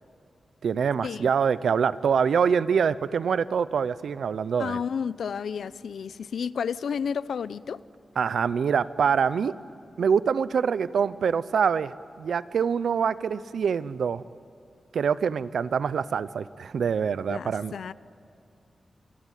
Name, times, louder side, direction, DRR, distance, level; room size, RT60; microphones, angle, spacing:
voice 1, 0.6-4.8 8.2-9.5 10.0-14.2 14.9-17.7, right 6 dB, 80° right, 16 dB, 0.7 m, -25 dB
voice 2, 4.6-7.8 17.3-17.9, left 6 dB, 80° left, 17 dB, 0.6 m, -31 dB
27.0 x 24.0 x 9.2 m, 2.4 s
wide cardioid pair, 145°, 0 cm